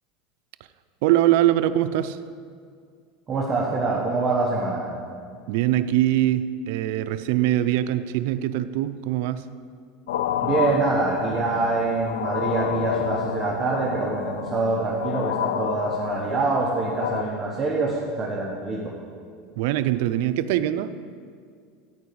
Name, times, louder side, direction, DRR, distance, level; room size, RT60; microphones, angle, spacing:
voice 1, 1.0-2.2 5.5-9.5 19.6-20.9, right 13 dB, 70° right, 11 dB, 0.5 m, -22 dB
voice 2, 3.3-4.8 10.4-18.8, right 3 dB, 25° right, -4 dB, 1.4 m, -25 dB
sound 1, 10.1-17.2, left 10 dB, 90° left, 0.5 m, -30 dB
14.0 x 4.6 x 8.7 m, 2.2 s
supercardioid pair, 145°, 0 cm